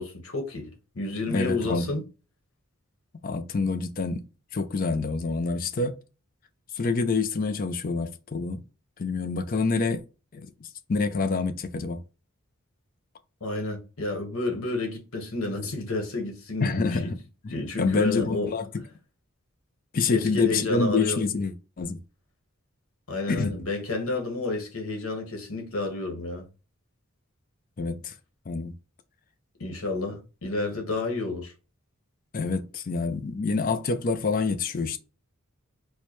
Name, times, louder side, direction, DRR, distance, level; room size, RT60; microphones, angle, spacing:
voice 1, 0.0-2.0 13.4-17.0 17.5-18.5 20.1-21.2 23.1-26.4 29.6-31.5, left 2 dB, 80° left, 1.2 m, -30 dB
voice 2, 1.3-1.8 3.2-4.2 4.5-5.9 6.7-8.6 9.0-10.0 10.3-10.5 10.9-12.0 16.6-17.2 17.4-18.8 19.9-22.0 23.3-23.5 27.8-28.1 28.5-28.7 32.3-35.0, left 4 dB, 40° left, 0.4 m, -27 dB
4.5 x 2.2 x 3.0 m
head